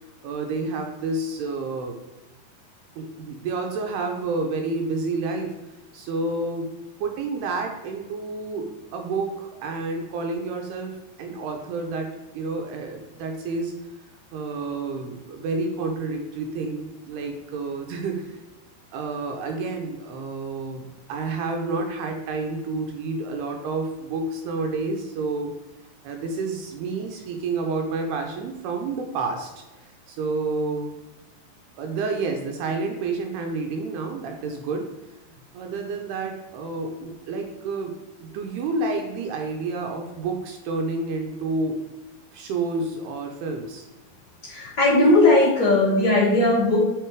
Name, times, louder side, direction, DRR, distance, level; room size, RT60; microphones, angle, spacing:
voice 1, 0.2-2.0 3.0-5.6 5.9-6.7 7.0-12.1 12.3-13.7 14.3-18.4 18.9-25.5 26.0-29.5 29.8-31.0 31.8-34.9 35.5-41.8 42.3-43.9, right 3 dB, 80° right, 3 dB, 2.6 m, -29 dB
voice 2, 44.4-46.8, left 2 dB, 75° left, -9 dB, 0.9 m, -18 dB
7.9 x 4.4 x 4.6 m, 1.0 s
omnidirectional pair, 5.1 m